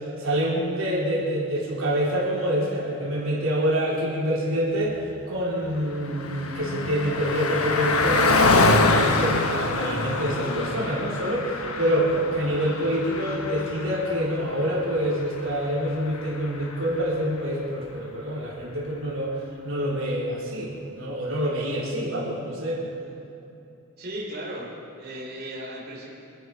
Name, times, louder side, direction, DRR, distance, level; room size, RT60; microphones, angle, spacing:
voice 1, 0.2-19.3 19.6-22.8, equal, 70° right, -5 dB, 3.7 m, -26 dB
Car passing by, 5.4-17.2, left 3 dB, 75° left, 1.3 m, -26 dB
voice 2, 22.8-23.2 24.0-24.7 25.0-26.1, right 1 dB, 45° right, -5 dB, 3.5 m, -36 dB
26.0 x 10.5 x 5.4 m, 2.8 s
head